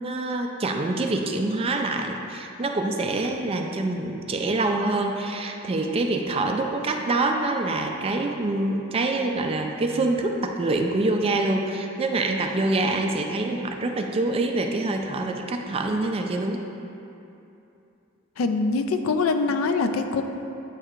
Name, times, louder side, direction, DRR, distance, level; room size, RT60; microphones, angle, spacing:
voice 1, 0.0-16.6, right 2 dB, 25° right, 3 dB, 0.3 m, -25 dB
voice 2, 18.4-20.2, left 4 dB, 70° left, 7 dB, 0.4 m, -23 dB
8.8 x 4.5 x 2.5 m, 2.8 s
head